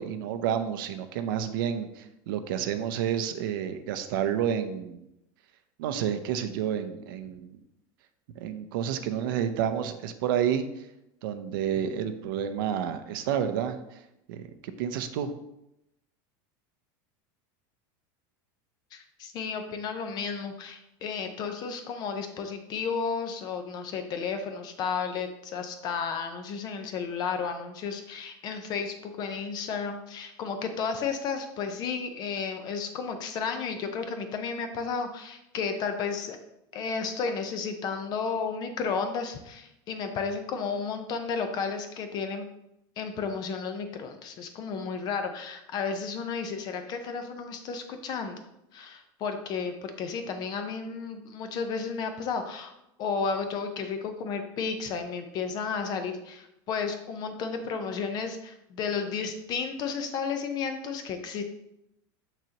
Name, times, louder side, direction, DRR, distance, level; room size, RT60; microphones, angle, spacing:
voice 1, 0.0-5.0 5.8-7.6 8.4-10.6 11.2-14.0 14.3-14.4 14.8-15.3, right 9 dB, 80° right, 9 dB, 0.7 m, -30 dB
voice 2, 18.9-36.4 36.7-42.5 43.0-48.4 48.7-52.7 53.0-61.4, left 5 dB, 35° left, 7 dB, 0.8 m, -33 dB
6.6 x 6.0 x 2.9 m, 0.84 s
supercardioid pair, 155°, 11 cm